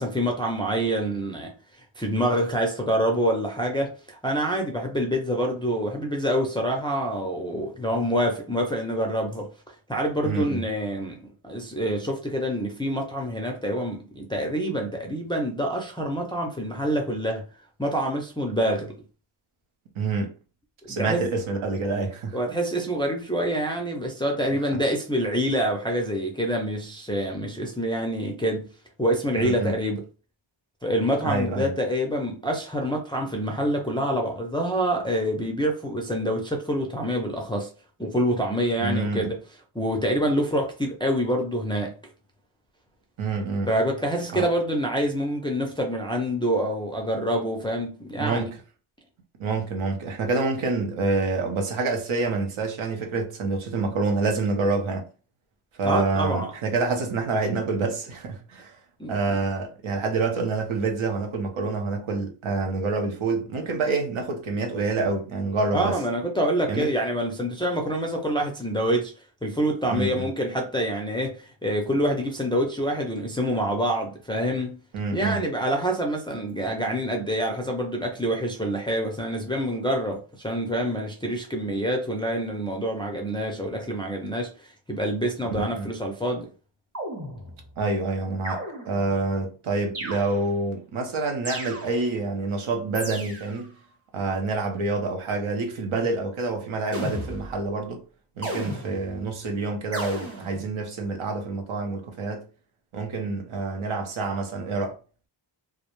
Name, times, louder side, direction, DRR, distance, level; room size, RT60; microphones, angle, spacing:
voice 1, 0.0-1.5 2.0-17.4 17.8-18.9 20.9-21.3 22.3-28.7 29.0-30.0 30.8-37.7 38.0-39.4 39.7-41.9 43.7-48.5 55.8-56.5 59.0-59.4 65.7-69.1 69.4-74.8 75.1-86.5, equal, 10° left, 0.3 m, -26 dB
voice 2, 10.2-10.6 20.0-20.4 20.9-22.4 29.3-29.8 31.2-31.7 38.8-39.3 43.2-43.7 44.3-44.5 48.2-48.6 49.4-55.0 55.8-58.8 59.1-66.0 66.6-66.9 69.9-70.3 74.9-75.4 85.6-85.9 87.8-93.7 94.1-98.0 98.4-102.5 102.9-105.0, right 3 dB, 75° right, 0.8 m, -27 dB
sound 1, 86.9-87.7 88.4-89.2 89.9-90.7 91.4-92.2 92.9-93.7 96.9-97.7 98.4-99.2 99.9-100.7, right 1 dB, 30° right, 1.0 m, -35 dB
2.4 x 2.0 x 2.9 m
wide cardioid pair, 105°, 48 cm